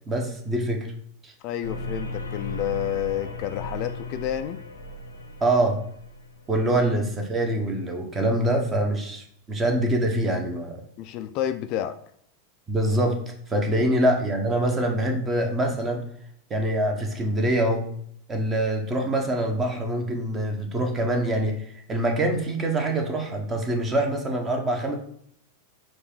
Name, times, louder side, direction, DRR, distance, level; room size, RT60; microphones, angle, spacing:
voice 1, 0.1-0.9 1.2-1.3 5.4-5.8 6.5-10.8 12.7-13.2 13.5-16.0 16.5-17.8 18.3-25.0, right 1 dB, 20° right, 3 dB, 1.0 m, -24 dB
voice 2, 1.4-4.6 11.0-11.9 13.7-13.9, left 11 dB, 45° left, 10 dB, 0.3 m, -30 dB
sound 1, 1.6-6.9, left 2 dB, 85° left, 0.7 m, -36 dB
4.6 x 2.5 x 4.6 m, 0.67 s
figure-of-eight pair, 90°, 0 cm